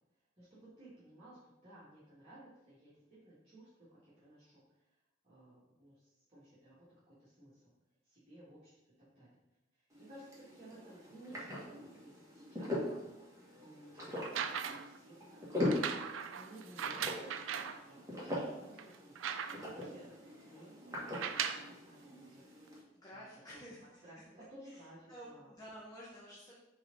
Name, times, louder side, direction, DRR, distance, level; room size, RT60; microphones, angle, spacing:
voice 1, 0.4-4.6 5.2-7.7 8.0-8.8 9.2-9.4 9.7-12.7 13.5-16.0 16.3-19.2 19.5-22.4 23.1-23.6 24.0-25.5, right 1 dB, 35° right, -11 dB, 1.9 m, -57 dB
sound 1, 9.9-22.8, left 1 dB, 15° right, 1.5 m, -42 dB
sound 2, 14.2-15.0 15.6-17.8 18.4-18.5 18.8-19.8 21.0-21.7 22.7-22.8, right 7 dB, 90° right, 0.4 m, -39 dB
voice 2, 22.9-24.0 24.6-24.8 25.1-26.5, equal, 20° left, -5 dB, 0.9 m, -51 dB
4.7 x 3.8 x 5.2 m, 0.95 s
head